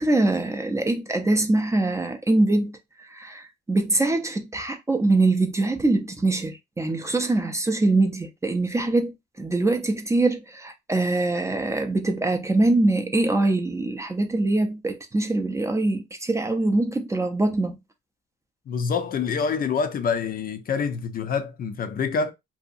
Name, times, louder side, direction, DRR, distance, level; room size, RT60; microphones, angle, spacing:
voice 1, 0.0-2.8 3.1-9.1 9.4-17.8, right 2 dB, 15° right, 0.4 m, -23 dB
voice 2, 18.7-22.3, left 5 dB, 45° left, 0.5 m, -26 dB
2.7 x 2.2 x 2.5 m
cardioid pair, 90°, 20 cm